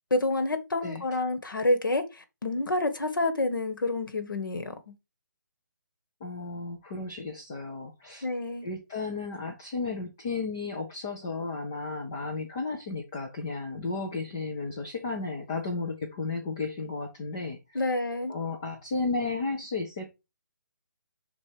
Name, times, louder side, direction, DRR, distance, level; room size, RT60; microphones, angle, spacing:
voice 1, 0.1-4.9 8.2-8.7 17.8-18.3, left 2 dB, 85° left, 1.6 m, -28 dB
voice 2, 6.2-8.3 8.6-17.8 18.3-20.1, left 3 dB, 10° left, 0.3 m, -33 dB
5.2 x 4.2 x 4.8 m
hypercardioid pair, 175°, 11 cm